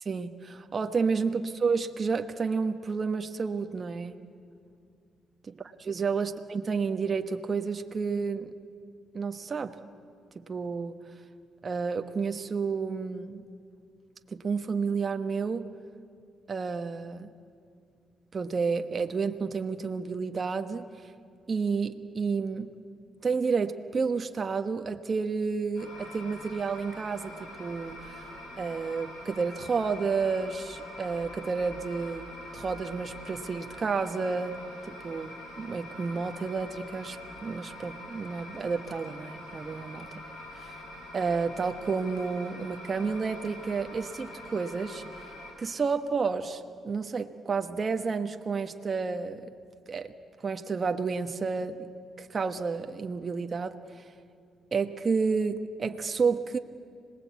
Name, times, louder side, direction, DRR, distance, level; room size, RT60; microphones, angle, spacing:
voice 1, 0.1-4.2 5.5-5.6 5.8-8.5 9.1-9.8 10.5-11.0 11.6-13.4 14.3-15.7 16.5-17.3 18.3-20.8 21.5-22.7 23.2-28.2 28.6-32.2 32.5-34.6 34.9-40.1 41.1-45.0 45.6-49.4 49.9-50.1 50.4-51.9 52.2-53.8 54.7-56.6, right 5 dB, 40° right, 6 dB, 1.1 m, -30 dB
sound 1, 25.8-45.5, left 1 dB, 90° left, 7.4 m, -44 dB
26.0 x 19.5 x 8.3 m, 2.4 s
cardioid pair, 90°, 0 cm